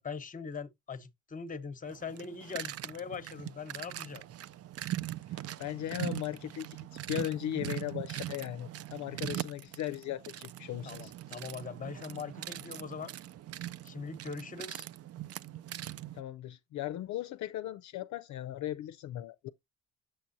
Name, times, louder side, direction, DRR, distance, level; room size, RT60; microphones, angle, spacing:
voice 1, 0.0-4.2 10.8-13.1 13.8-14.8, left 5 dB, 25° left, 1.0 m, -41 dB
sound 1, 1.9-16.2, right 13 dB, 55° right, 0.5 m, -41 dB
voice 2, 5.6-6.8 7.1-11.1 16.1-19.5, left 12 dB, 70° left, 0.5 m, -37 dB
7.7 x 6.0 x 2.6 m
cardioid pair, 90°, 30 cm